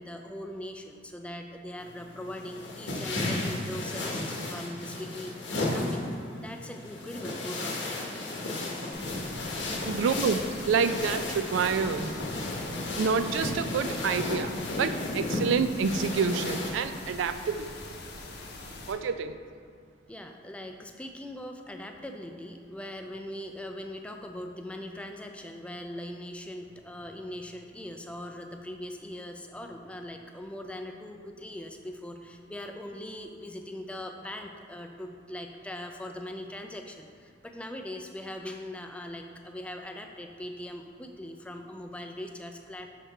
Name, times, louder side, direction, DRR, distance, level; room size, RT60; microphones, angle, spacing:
voice 1, 0.0-8.2 20.1-42.9, left 1 dB, 5° left, 4 dB, 0.3 m, -41 dB
sound 1, 1.8-16.7, left 2 dB, 85° left, 1.0 m, -34 dB
sound 2, 8.9-18.9, left 2 dB, 60° left, 0.7 m, -43 dB
voice 2, 9.8-12.2 13.0-17.9 18.9-19.4, right 5 dB, 85° right, 10 dB, 0.3 m, -28 dB
6.3 x 5.8 x 3.3 m, 2.2 s
head